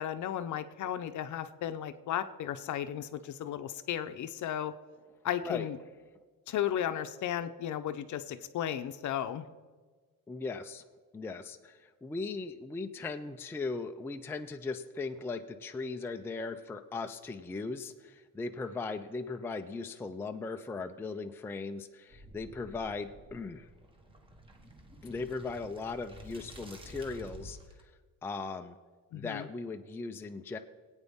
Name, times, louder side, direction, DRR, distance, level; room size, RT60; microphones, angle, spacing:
voice 1, 0.0-4.7 5.2-5.8 6.5-9.5 29.1-29.5, left 10 dB, 55° left, 10 dB, 0.7 m, -34 dB
voice 2, 10.3-10.8 11.1-23.7 25.0-27.6 27.8-27.9 28.2-28.8 29.1-30.6, left 3 dB, 5° left, 6 dB, 0.4 m, -38 dB
sound 1, 22.1-27.8, equal, 15° right, 1.3 m, -51 dB
20.5 x 8.9 x 3.6 m, 1.4 s
cardioid pair, 150°, 36 cm